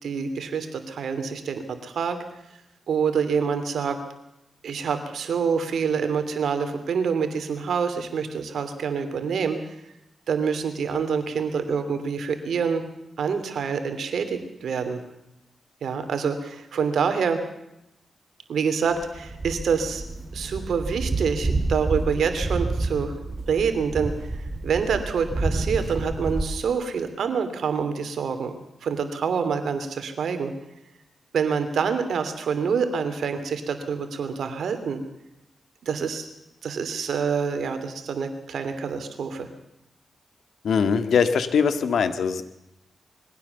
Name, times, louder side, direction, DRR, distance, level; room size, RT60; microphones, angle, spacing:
voice 1, 0.0-2.2 2.9-4.0 4.6-9.7 10.3-12.8 13.2-15.0 15.8-17.4 18.5-20.0 20.3-23.1 23.5-28.5 28.8-30.5 31.3-35.0 35.9-36.3 36.6-39.5, right 6 dB, 80° right, 8 dB, 2.9 m, -26 dB
sound 1, 18.9-26.4, right 2 dB, 30° right, 3.0 m, -29 dB
voice 2, 40.6-42.4, left 6 dB, 80° left, 10 dB, 1.8 m, -21 dB
22.5 x 16.5 x 7.0 m, 0.85 s
cardioid pair, 80°, 0 cm